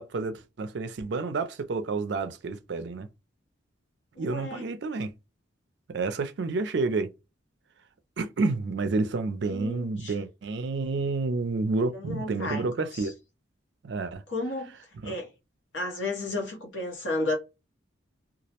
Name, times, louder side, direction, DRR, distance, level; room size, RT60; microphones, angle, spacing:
voice 1, 0.0-3.1 4.2-5.1 5.9-7.1 8.2-13.1 13.8-14.2 15.0-15.2, right 3 dB, 55° right, 0.4 m, -29 dB
voice 2, 4.1-4.7 9.5-10.1 11.9-13.1 14.3-15.3 15.7-17.4, left 2 dB, 70° left, 0.9 m, -33 dB
2.3 x 2.0 x 2.8 m
head